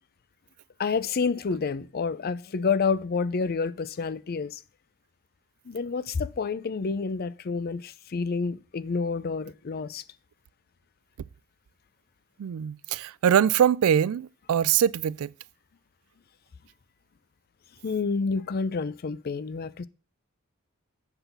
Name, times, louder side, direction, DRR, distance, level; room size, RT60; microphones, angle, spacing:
voice 1, 0.8-4.6 5.7-10.0 17.8-19.9, left 5 dB, 45° left, 0.4 m, -29 dB
voice 2, 12.4-15.3, right 9 dB, 70° right, 0.3 m, -23 dB
8.1 x 3.9 x 6.7 m
head